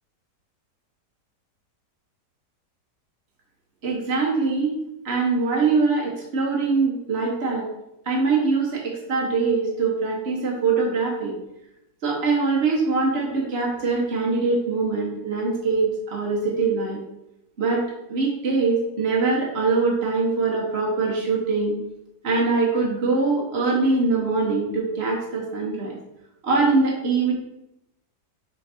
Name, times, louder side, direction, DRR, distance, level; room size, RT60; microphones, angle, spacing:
voice 1, 3.8-4.7 5.0-7.7 8.0-11.3 12.0-17.0 17.6-17.8 18.1-21.8 22.2-26.0 26.4-27.3, right 4 dB, 40° right, -2 dB, 1.3 m, -23 dB
7.0 x 3.9 x 4.4 m, 0.86 s
omnidirectional pair, 1.9 m